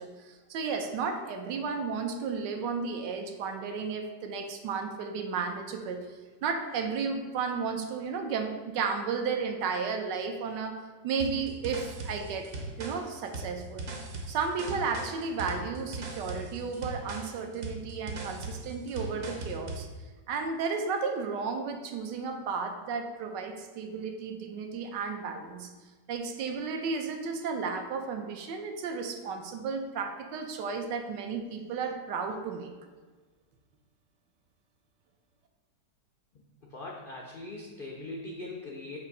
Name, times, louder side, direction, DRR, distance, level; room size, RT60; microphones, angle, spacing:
voice 1, 0.0-10.8 11.0-12.5 12.8-13.9 14.3-19.9 20.3-25.7 26.1-32.7, right 5 dB, 80° right, 5 dB, 1.3 m, -33 dB
sound 1, 11.2-19.9, right 2 dB, 50° right, 1.0 m, -39 dB
voice 2, 36.6-39.0, left 2 dB, 85° left, -1 dB, 0.4 m, -41 dB
7.0 x 2.7 x 5.2 m, 1.4 s
omnidirectional pair, 1.9 m